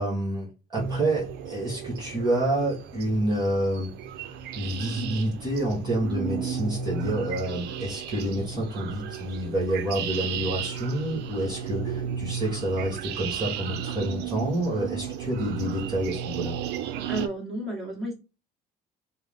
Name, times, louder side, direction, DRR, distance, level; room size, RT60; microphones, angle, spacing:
voice 1, 0.0-3.9 4.6-16.6, right 1 dB, 25° right, -2 dB, 1.4 m, -28 dB
sound 1, 0.7-17.3, right 7 dB, 80° right, 0.5 m, -34 dB
voice 2, 17.0-18.1, right 1 dB, ahead, -2 dB, 1.7 m, -32 dB
3.5 x 2.0 x 3.4 m, 0.30 s
cardioid pair, 110°, 17 cm